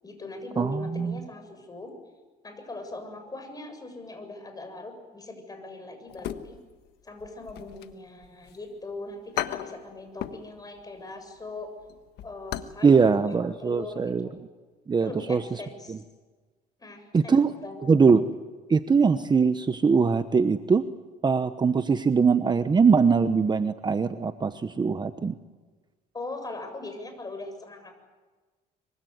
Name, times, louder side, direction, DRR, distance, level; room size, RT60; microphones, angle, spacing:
voice 1, 0.0-1.9 2.4-6.6 7.0-11.7 12.2-14.4 15.0-16.0 16.8-17.8 26.1-28.0, left 2 dB, 20° left, 7 dB, 7.1 m, -40 dB
voice 2, 0.6-1.2 12.8-14.3 14.9-15.4 15.9-16.0 17.1-17.5 17.9-18.3 18.7-20.9 21.2-25.3, right 5 dB, 25° right, 10 dB, 1.0 m, -22 dB
sound 1, 6.1-6.9 7.2-8.6 8.9-9.0 9.4-10.5 10.8-11.0 11.4-12.8 13.1-13.2 13.7-13.9 14.2-14.3, left 12 dB, 80° left, 1.4 m, -36 dB
25.0 x 24.5 x 9.5 m, 1.3 s
cardioid pair, 110°, 17 cm